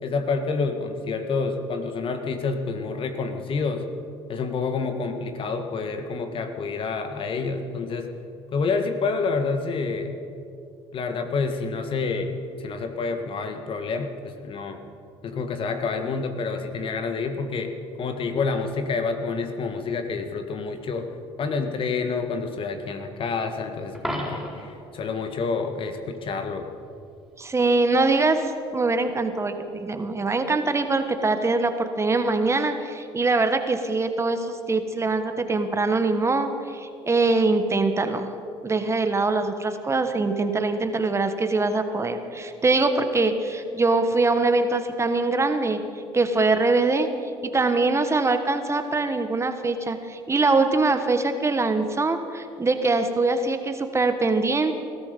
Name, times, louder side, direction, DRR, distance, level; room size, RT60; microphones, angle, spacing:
voice 1, 0.0-3.8 4.3-8.1 8.5-10.2 10.9-14.1 14.4-14.8 15.2-17.7 18.0-21.1 21.4-26.7, left 4 dB, 50° left, 6 dB, 1.7 m, -28 dB
Coin (dropping), 23.9-24.8 30.9-31.1, equal, ahead, 4.5 m, -32 dB
voice 2, 27.4-28.4 28.7-38.3 38.6-45.8 46.1-47.1 47.5-54.8, right 3 dB, 25° right, 8 dB, 1.3 m, -23 dB
19.5 x 13.0 x 5.3 m, 2.5 s
supercardioid pair, 80°, 11 cm